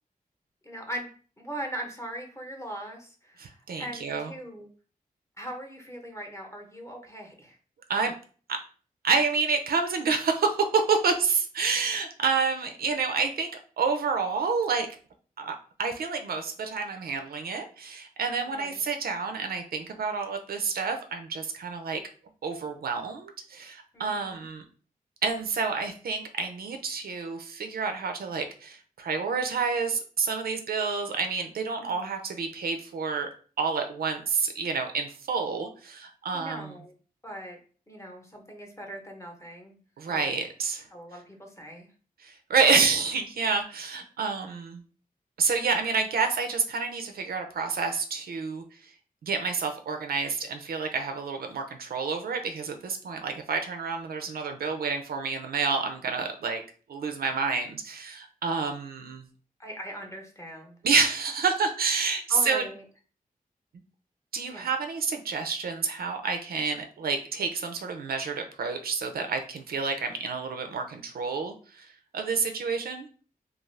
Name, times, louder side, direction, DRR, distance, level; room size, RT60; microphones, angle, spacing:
voice 1, 0.6-1.1 1.4-4.7 5.4-7.6 18.4-18.8 23.9-24.4 31.8-32.2 36.3-36.9 37.2-37.6 37.9-39.8 40.1-40.2 40.9-41.9 59.6-60.8 62.3-62.8 64.5-64.7, equal, 20° left, 1 dB, 0.8 m, -40 dB
voice 2, 3.4-4.3 7.9-8.1 8.5-8.6 9.0-13.5 13.8-14.9 15.4-22.0 22.4-24.6 25.2-33.3 33.6-36.7 40.0-40.9 42.2-44.8 45.4-48.9 49.2-56.6 56.9-59.3 60.8-62.6 64.3-73.1, right 5 dB, 80° right, 5 dB, 0.4 m, -29 dB
2.4 x 2.4 x 3.2 m, 0.40 s
wide cardioid pair, 75°, 15 cm